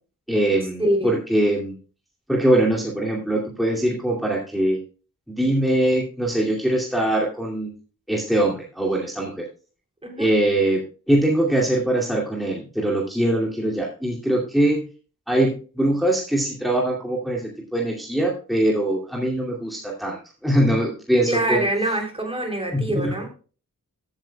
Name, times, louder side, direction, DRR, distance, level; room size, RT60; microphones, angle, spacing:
voice 1, 0.3-1.7 2.3-4.8 5.3-7.7 8.1-9.4 10.2-10.8 11.1-14.8 15.3-21.6 22.7-23.1, right 1 dB, ahead, -3 dB, 2.5 m, -22 dB
voice 2, 0.8-1.1 10.0-10.3 21.3-23.3, right 1 dB, 15° right, 2 dB, 3.2 m, -24 dB
15.0 x 8.9 x 2.2 m, 0.37 s
wide cardioid pair, 100°, 32 cm